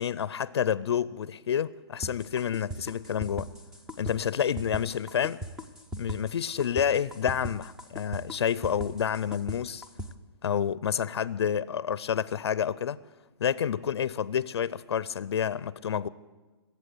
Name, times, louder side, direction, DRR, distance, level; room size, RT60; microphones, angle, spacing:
voice 1, 0.0-3.5 4.0-5.4 6.0-9.8 10.4-13.0 13.4-16.1, left 8 dB, 75° left, 0.5 m, -29 dB
sound 1, 2.0-10.1, equal, 5° right, 0.4 m, -38 dB
20.5 x 8.4 x 8.2 m
hypercardioid pair, 165°, 14 cm